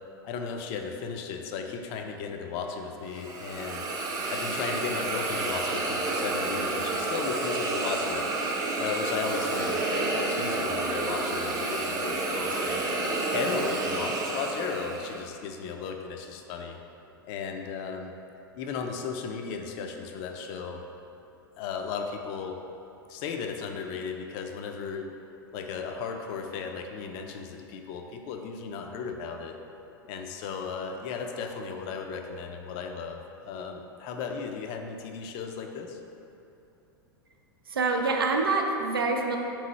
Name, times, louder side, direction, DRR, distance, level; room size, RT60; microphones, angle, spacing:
voice 1, 0.2-3.8 4.3-8.3 8.8-12.8 13.3-16.8 17.2-18.1 18.6-20.8 21.6-22.6 23.1-25.1 25.5-29.6 30.1-36.0, left 5 dB, 45° left, 4 dB, 0.4 m, -35 dB
Hiss, 3.1-15.2, right 2 dB, 30° right, 0.6 m, -30 dB
voice 2, 37.7-39.4, right 3 dB, 85° right, 2 dB, 0.5 m, -26 dB
3.7 x 3.1 x 4.0 m, 2.9 s
hypercardioid pair, 95°, 12 cm